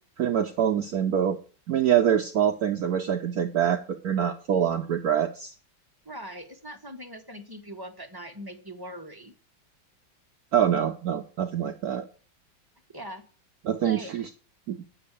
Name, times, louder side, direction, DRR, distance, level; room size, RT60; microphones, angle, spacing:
voice 1, 0.2-1.4 1.7-3.8 4.0-5.5 10.5-12.0 13.6-14.3 14.7-14.8, right 9 dB, 60° right, 7 dB, 1.1 m, -25 dB
voice 2, 6.0-9.3 12.9-13.2 13.8-14.1, equal, 15° right, 3 dB, 1.1 m, -41 dB
9.8 x 6.3 x 8.3 m, 0.39 s
omnidirectional pair, 2.1 m